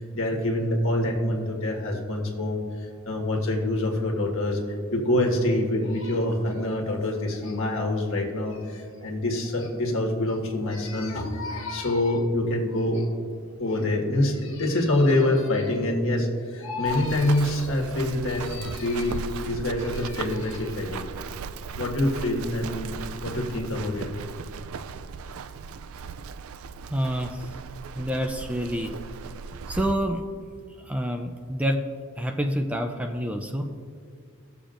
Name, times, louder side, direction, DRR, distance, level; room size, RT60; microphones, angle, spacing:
voice 1, 0.0-13.1 13.6-21.1 21.8-24.1, left 1 dB, 65° left, 0 dB, 1.6 m, -26 dB
Run, 16.8-29.9, right 5 dB, 70° right, 0.4 m, -37 dB
voice 2, 26.9-27.4 28.0-28.9 29.7-30.2 30.8-31.8 32.2-33.7, equal, 5° right, 4 dB, 0.4 m, -27 dB
19.0 x 6.9 x 2.5 m, 2.2 s
head